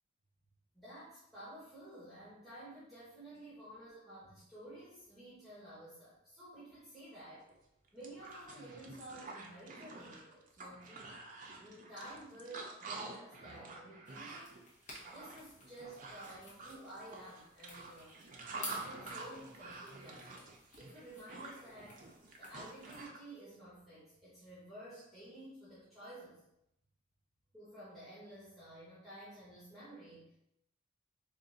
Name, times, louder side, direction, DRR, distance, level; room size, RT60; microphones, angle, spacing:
voice 1, 0.7-7.5 7.9-11.1 11.6-14.6 15.0-18.1 18.5-20.5 20.7-22.0 22.4-26.4 27.5-30.4, right 1 dB, ahead, -11 dB, 1.2 m, -52 dB
sound 1, 7.5-7.6 7.9-23.2, right 3 dB, 40° right, 0.5 m, -48 dB
sound 2, 14.0-23.0, left 2 dB, 40° left, 1.1 m, -53 dB
3.7 x 2.5 x 3.8 m, 0.81 s
head